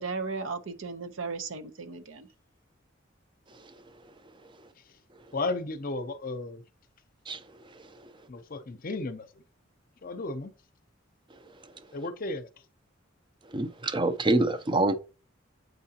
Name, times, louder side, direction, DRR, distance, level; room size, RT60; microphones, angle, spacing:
voice 1, 0.0-2.3, right 4 dB, 80° right, 0.8 m, -35 dB
voice 2, 5.3-6.6 8.3-9.3 10.0-10.5 11.9-12.5, left 2 dB, 45° left, 0.6 m, -34 dB
voice 3, 13.5-14.9, right 2 dB, 25° right, 0.6 m, -25 dB
8.1 x 4.8 x 2.8 m
head